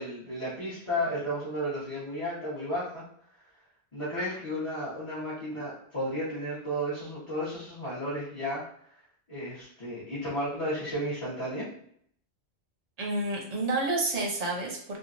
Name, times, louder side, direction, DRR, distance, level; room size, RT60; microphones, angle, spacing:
voice 1, 0.0-3.1 3.9-8.6 9.3-11.7, equal, 30° left, -12 dB, 1.1 m, -33 dB
voice 2, 13.0-15.0, right 2 dB, 40° right, -1 dB, 0.7 m, -29 dB
2.9 x 2.3 x 2.5 m, 0.65 s
omnidirectional pair, 1.1 m